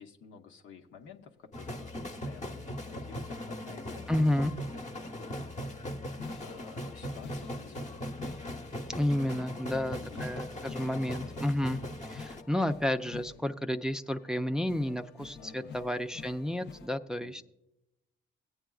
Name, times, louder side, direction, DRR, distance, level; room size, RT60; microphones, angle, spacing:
voice 1, 0.0-4.3 4.9-5.9 6.4-8.3 9.3-9.4 9.7-10.5 15.4-15.9 17.2-17.4, left 6 dB, 85° left, 4 dB, 1.0 m, -52 dB
sound 1, 1.5-12.4, left 1 dB, 35° left, 1.1 m, -39 dB
voice 2, 4.1-4.5 9.0-17.4, left 1 dB, 5° right, 6 dB, 0.4 m, -31 dB
sound 2, 5.5-16.9, left 6 dB, 60° left, 0.7 m, -49 dB
17.5 x 8.9 x 2.3 m, 0.88 s
cardioid pair, 90°, 20 cm